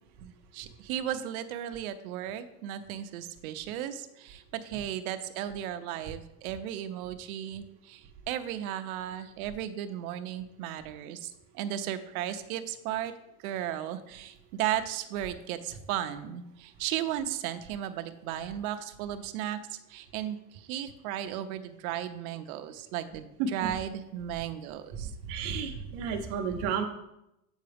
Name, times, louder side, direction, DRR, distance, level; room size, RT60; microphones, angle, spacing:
voice 1, 0.2-13.1 13.4-25.1 25.8-25.9, right 11 dB, 75° right, 9 dB, 0.7 m, -35 dB
voice 2, 25.2-26.8, right 6 dB, 50° right, 5 dB, 1.0 m, -32 dB
8.1 x 4.7 x 3.4 m, 0.87 s
supercardioid pair, 165°, 43 cm